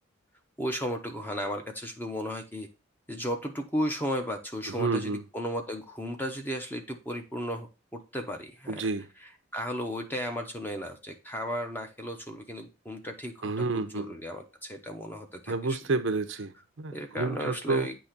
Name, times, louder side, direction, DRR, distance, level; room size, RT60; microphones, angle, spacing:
voice 1, 0.6-2.7 3.1-8.9 9.5-15.8 16.9-18.0, equal, 10° left, 0.9 m, -35 dB
voice 2, 4.8-5.2 8.7-9.1 13.4-14.1 15.5-17.9, right 3 dB, 65° right, 0.6 m, -30 dB
8.4 x 3.0 x 5.8 m
head